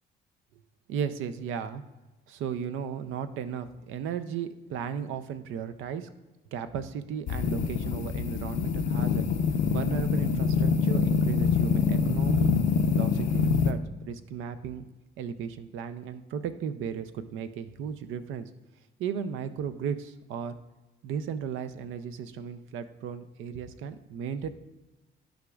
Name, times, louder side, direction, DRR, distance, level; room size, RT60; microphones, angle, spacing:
voice 1, 0.9-1.8 2.3-6.1 6.5-9.2 9.7-12.5 12.9-14.9 15.2-18.5 19.0-20.5 21.0-24.5, right 7 dB, 85° right, 10 dB, 0.5 m, -35 dB
sound 1, 7.3-13.7, left 5 dB, 70° left, 0.6 m, -25 dB
11.5 x 5.0 x 2.3 m, 1.1 s
cardioid pair, 90°, 20 cm